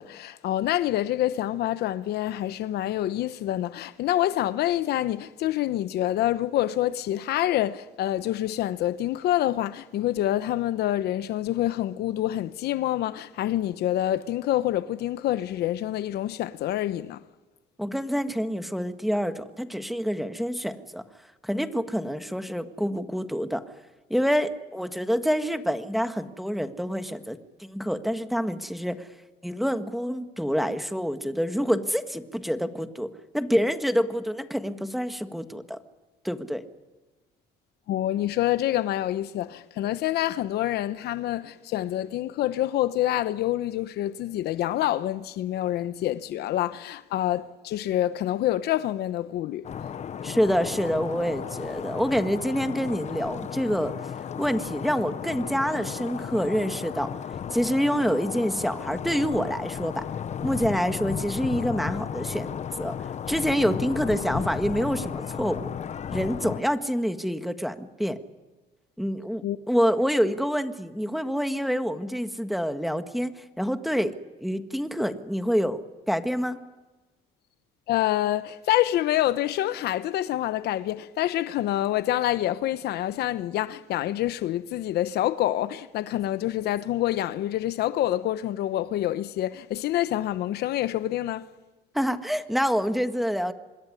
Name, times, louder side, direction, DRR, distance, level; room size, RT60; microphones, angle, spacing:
voice 1, 0.0-17.2 37.9-49.7 69.4-69.6 77.9-91.5, left 13 dB, 75° left, 1.0 m, -27 dB
voice 2, 17.8-21.0 21.4-23.6 24.1-29.1 29.4-35.8 36.2-36.6 50.2-53.9 54.4-57.1 57.5-60.0 60.4-63.0 63.3-65.7 66.1-68.2 69.0-75.8 76.1-76.6 91.9-93.5, equal, ahead, 1.6 m, -27 dB
sound 1, 49.6-66.6, left 8 dB, 45° left, 1.0 m, -34 dB
26.0 x 21.0 x 9.8 m
cardioid pair, 110°, 17 cm